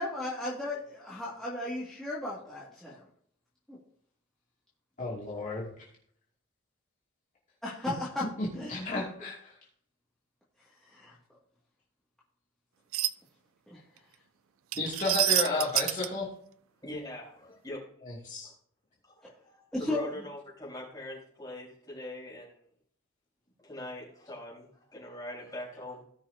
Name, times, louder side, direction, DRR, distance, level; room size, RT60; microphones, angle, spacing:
voice 1, 0.0-3.0 3.7-3.8 7.6-8.2 8.6-8.8 10.9-11.2 13.7-13.8 19.7-20.1, left 2 dB, ahead, -8 dB, 2.2 m, -35 dB
voice 2, 5.0-5.7 7.8-7.9 8.4-9.5 14.8-16.3 18.0-18.5, left 3 dB, 35° left, -4 dB, 2.5 m, -32 dB
sound 1, 12.9-13.1 14.7-16.1, right 14 dB, 70° right, 0.4 m, -27 dB
voice 3, 16.8-17.9 18.4-18.5 19.0-22.5 23.6-26.1, left 1 dB, 15° left, -5 dB, 4.5 m, -42 dB
17.5 x 6.1 x 2.8 m, 0.63 s
head